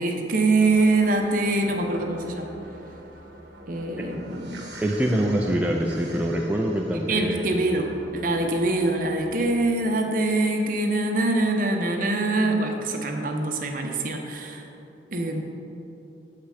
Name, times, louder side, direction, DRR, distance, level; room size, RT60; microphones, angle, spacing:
voice 1, 0.0-2.5 3.7-4.7 7.1-14.6 15.1-15.4, right 2 dB, 50° right, 3 dB, 0.8 m, -24 dB
sound 1, 0.6-9.8, right 1 dB, 75° right, 0.9 m, -45 dB
voice 2, 4.8-7.4, equal, 10° right, 0 dB, 0.4 m, -24 dB
7.5 x 5.8 x 4.9 m, 2.9 s
head